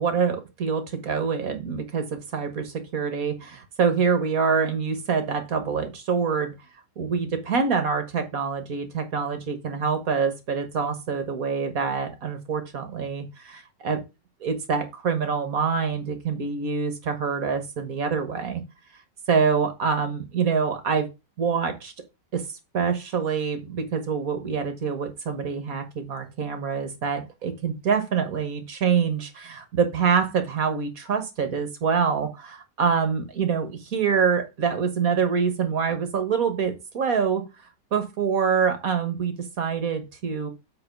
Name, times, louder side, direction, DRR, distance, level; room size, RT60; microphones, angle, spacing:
voice 1, 0.0-6.5 7.0-14.0 14.4-18.6 19.3-21.1 21.4-21.9 22.3-22.4 22.7-37.4 37.9-40.5, right 6 dB, 50° right, 8 dB, 1.5 m, -25 dB
7.8 x 3.9 x 5.8 m, 0.25 s
omnidirectional pair, 2.1 m